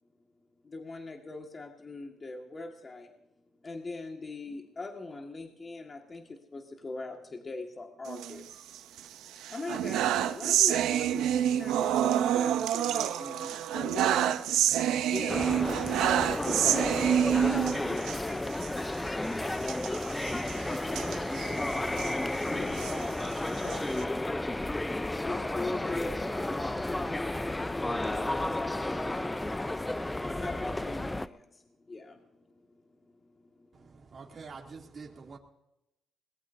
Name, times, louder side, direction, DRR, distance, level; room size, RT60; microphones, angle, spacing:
voice 1, 0.4-14.8 15.0-19.8 20.4-22.8 24.0-24.1 25.2-33.9, left 3 dB, 30° left, 1.9 m, -42 dB
sound 1, 8.1-9.0 9.4-18.2 18.5-18.7 18.9-19.1 19.6-22.1 22.6-24.0, right 10 dB, 90° right, 0.8 m, -28 dB
sound 2, 15.3-31.3, left 1 dB, 15° left, 0.7 m, -32 dB
sound 3, 15.3-27.6, right 2 dB, 20° right, 1.9 m, -50 dB
voice 2, 22.5-23.9, left 3 dB, 55° left, 5.4 m, -46 dB
voice 3, 33.7-35.4, right 4 dB, 40° right, 2.8 m, -46 dB
22.0 x 20.0 x 2.7 m
cardioid pair, 90°, 0 cm